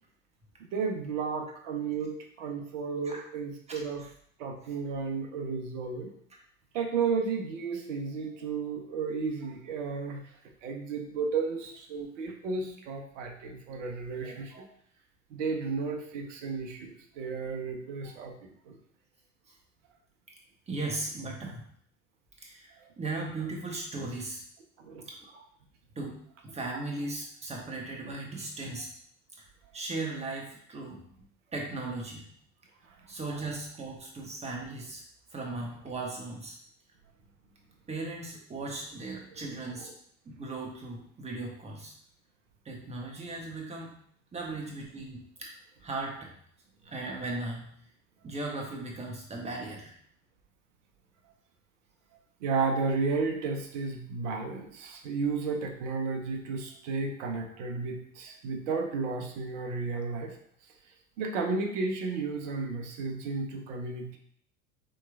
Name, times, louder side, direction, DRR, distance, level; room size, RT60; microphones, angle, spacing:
voice 1, 0.7-4.0 4.4-6.1 6.7-10.2 10.6-14.6 15.3-18.8 22.8-22.9 24.8-25.0 52.4-60.3 61.2-64.2, right 4 dB, 60° right, 3 dB, 0.8 m, -33 dB
voice 2, 14.2-14.7 19.5-19.6 20.7-21.6 22.4-24.4 25.1-25.4 26.0-26.2 26.4-28.9 29.4-29.5 29.7-31.0 31.5-32.3 33.1-35.0 35.3-36.6 37.9-39.9 40.2-41.9 42.6-43.9 44.3-45.5 45.8-46.3 46.8-47.7 48.2-49.9, right 2 dB, 15° right, -1 dB, 1.0 m, -37 dB
4.7 x 3.0 x 2.3 m, 0.64 s
figure-of-eight pair, 75°, 41 cm